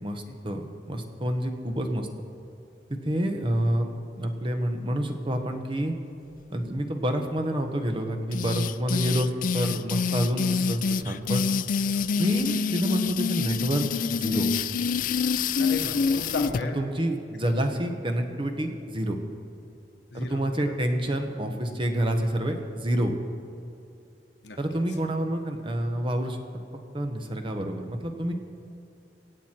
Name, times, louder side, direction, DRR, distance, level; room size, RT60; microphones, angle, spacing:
voice 1, 0.0-2.1 3.0-3.9 4.2-5.9 6.5-11.4 12.2-13.8 14.1-14.5 16.7-19.2 20.1-23.2 24.6-26.4 26.9-28.3, right 1 dB, 30° right, 5 dB, 1.2 m, -28 dB
sound 1, 8.3-16.6, left 5 dB, 50° left, 0.4 m, -26 dB
voice 2, 15.6-16.8 20.1-20.7 24.4-24.6, left 2 dB, 80° left, 3 dB, 1.3 m, -35 dB
24.5 x 8.3 x 4.5 m, 2.7 s
head